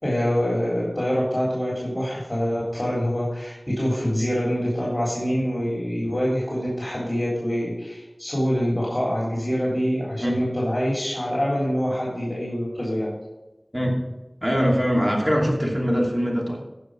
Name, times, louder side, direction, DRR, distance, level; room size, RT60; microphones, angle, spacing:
voice 1, 0.0-13.1, equal, 35° left, -6 dB, 3.6 m, -25 dB
voice 2, 14.4-16.6, equal, 15° right, -2 dB, 2.7 m, -22 dB
15.0 x 5.2 x 5.0 m, 1.0 s
wide cardioid pair, 40°, 0 cm